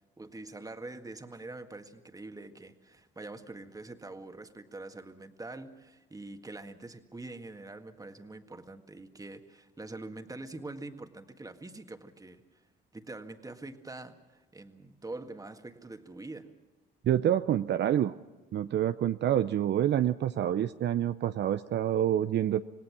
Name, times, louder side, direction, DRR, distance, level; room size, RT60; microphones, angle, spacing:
voice 1, 0.2-12.6 12.9-16.5, right 2 dB, 15° right, 7 dB, 1.8 m, -44 dB
voice 2, 17.0-18.1 18.5-22.6, right 11 dB, 60° right, 11 dB, 0.6 m, -27 dB
26.5 x 19.0 x 6.1 m, 1.1 s
cardioid pair, 90°, 20 cm